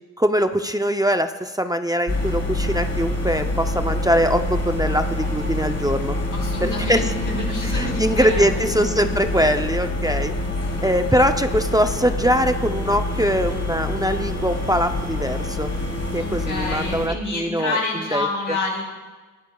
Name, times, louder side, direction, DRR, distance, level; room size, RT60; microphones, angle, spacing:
voice 1, 0.2-6.2 6.6-7.1 7.6-10.3 10.8-15.7 16.1-17.8 18.1-18.3, equal, 10° right, 7 dB, 0.5 m, -22 dB
stationair ijskast LR, 2.1-17.1, left 2 dB, 50° left, 1.7 m, -26 dB
voice 2, 6.3-9.2 10.7-11.0 16.1-18.8, left 2 dB, 80° left, -3 dB, 4.1 m, -28 dB
19.5 x 11.5 x 2.3 m, 1.3 s
cardioid pair, 60°, 31 cm